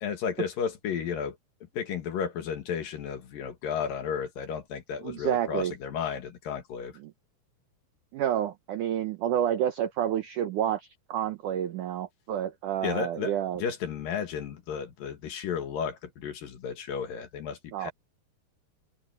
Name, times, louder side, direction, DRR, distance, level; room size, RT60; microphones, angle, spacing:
voice 1, 0.0-1.4 1.7-7.0 12.8-13.3 13.6-17.9, left 7 dB, 60° left, 3.2 m, -33 dB
voice 2, 5.0-5.7 7.0-7.1 8.1-13.6 17.7-17.9, right 10 dB, 75° right, 1.8 m, -29 dB
omnidirectional pair, 4.8 m